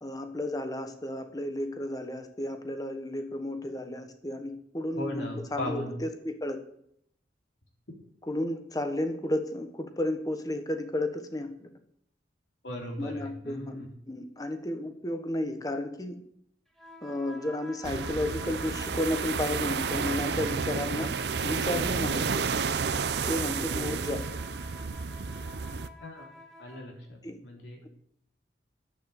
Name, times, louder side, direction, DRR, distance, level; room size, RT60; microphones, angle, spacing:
voice 1, 0.0-6.6 8.2-11.7 13.0-16.2 17.0-21.1 21.4-22.4 23.2-24.2 27.2-27.4, left 1 dB, 20° left, 7 dB, 1.3 m, -33 dB
voice 2, 5.0-5.9 12.6-13.9 26.0-26.3 26.6-27.9, left 1 dB, 80° left, 0 dB, 3.6 m, -38 dB
sound 1, 16.7-26.9, left 2 dB, 5° left, 2.7 m, -48 dB
sound 2, 17.8-25.9, right 5 dB, 65° right, 0.6 m, -31 dB
10.5 x 8.6 x 6.7 m, 0.70 s
head